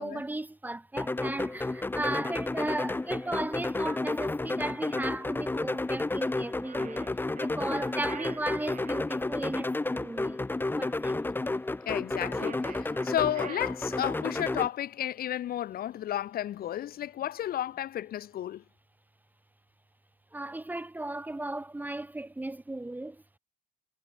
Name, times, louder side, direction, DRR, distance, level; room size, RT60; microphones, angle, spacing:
voice 1, 0.0-7.1 7.4-10.4 10.8-11.2 20.3-23.2, right 2 dB, 10° right, 2.4 m, -36 dB
sound 1, 1.0-14.7, left 2 dB, 10° left, 1.7 m, -31 dB
sound 2, 6.6-9.0 12.2-14.4, right 8 dB, 50° right, 6.8 m, -47 dB
voice 2, 11.9-18.6, left 12 dB, 60° left, 5.8 m, -32 dB
cardioid pair, 110°, 17 cm